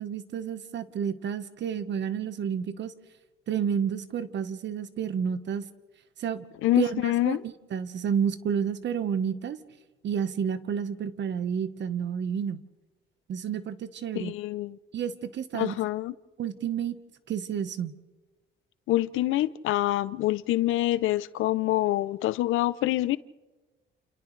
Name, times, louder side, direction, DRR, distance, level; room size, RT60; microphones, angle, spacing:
voice 1, 0.0-2.9 3.5-5.6 6.2-6.5 6.8-9.6 10.0-12.6 13.3-14.4 14.9-15.8 16.4-16.9 17.3-17.9, right 7 dB, 65° right, 1.3 m, -30 dB
voice 2, 6.6-7.4 14.1-14.8 15.5-16.1 18.9-23.2, left 15 dB, 90° left, 0.7 m, -26 dB
29.5 x 28.5 x 3.3 m
cardioid pair, 90°, 20 cm